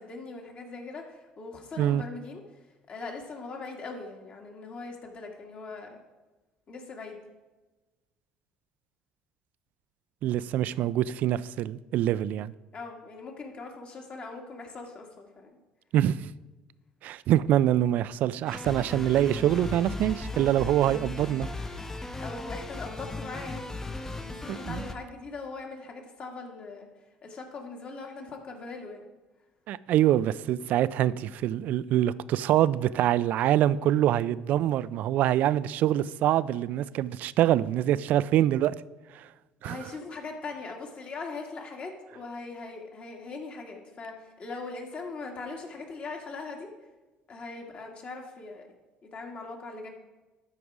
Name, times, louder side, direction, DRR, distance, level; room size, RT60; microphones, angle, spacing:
voice 1, 0.0-2.4 2.9-6.0 6.7-7.2 12.7-15.6 22.2-23.7 24.2-26.9 27.2-29.1 39.6-46.7 47.3-48.7 49.0-49.9, left 3 dB, 45° left, 2.0 m, -40 dB
voice 2, 10.2-12.5 15.9-16.3 17.0-21.5 24.5-24.8 29.7-38.7 39.1-39.3 39.6-39.8, right 12 dB, 65° right, 0.3 m, -25 dB
sound 1, 18.5-24.9, left 2 dB, 15° left, 0.7 m, -37 dB
12.5 x 4.9 x 4.8 m
supercardioid pair, 85°, 3 cm